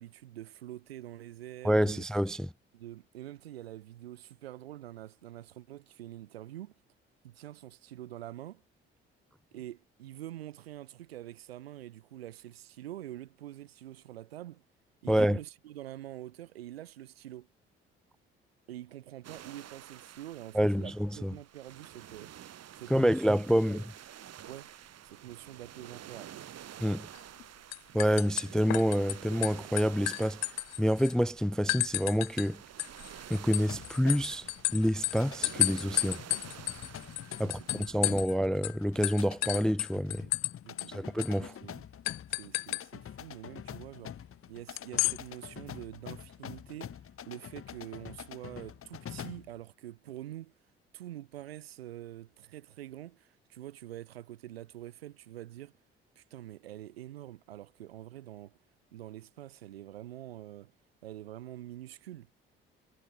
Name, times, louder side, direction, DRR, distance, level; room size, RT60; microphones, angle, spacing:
voice 1, 0.0-2.0 2.7-6.7 7.2-8.6 9.5-14.6 15.0-17.5 18.7-22.3 22.7-23.3 23.7-23.8 24.5-24.7 25.0-26.4 37.4-38.1 40.2-40.3 40.6-41.8 42.3-44.2 44.5-47.0 47.3-50.5 50.9-55.7 56.1-58.6 58.9-60.7 61.0-62.3, right 13 dB, 85° right, 3.2 m, -46 dB
voice 2, 1.6-2.5 15.1-15.4 20.5-21.3 22.9-23.8 26.8-27.1 27.9-30.5 30.8-32.6 33.3-34.5 34.7-36.2 37.4-40.3 40.9-41.5, equal, ahead, 0.3 m, -28 dB
sound 1, 19.2-37.9, right 10 dB, 55° right, 5.7 m, -50 dB
sound 2, 27.1-27.4 27.7-29.1 29.4-31.1 31.7-32.5 32.8-38.3 38.6-38.7 39.0-40.5 40.8-40.9 41.2-41.4 42.0-42.8 44.8-45.2, left 23 dB, 65° left, 0.6 m, -32 dB
sound 3, 33.7-49.5, left 9 dB, 50° left, 1.8 m, -46 dB
hypercardioid pair, 45°, 30 cm